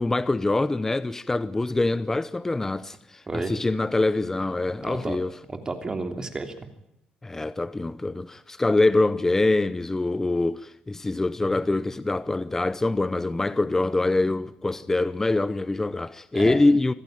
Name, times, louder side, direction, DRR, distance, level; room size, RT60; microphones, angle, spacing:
voice 1, 0.0-5.4 7.2-16.9, left 2 dB, 15° left, 0.8 m, -24 dB
voice 2, 4.8-5.2 5.5-6.7 16.3-16.6, right 3 dB, 25° right, 3.1 m, -31 dB
26.0 x 16.0 x 9.3 m
cardioid pair, 125°, 3 cm